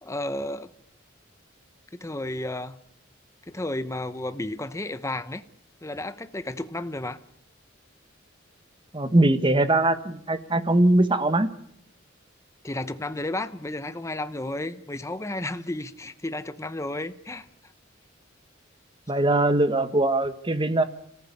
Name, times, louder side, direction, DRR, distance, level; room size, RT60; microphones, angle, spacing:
voice 1, 0.0-0.7 2.0-2.8 3.5-5.4 5.8-7.2 12.6-17.5, left 1 dB, 15° left, 11 dB, 0.8 m, -32 dB
voice 2, 8.9-11.5 19.1-20.8, right 2 dB, 25° right, 11 dB, 1.3 m, -21 dB
27.5 x 14.5 x 8.4 m, 0.71 s
head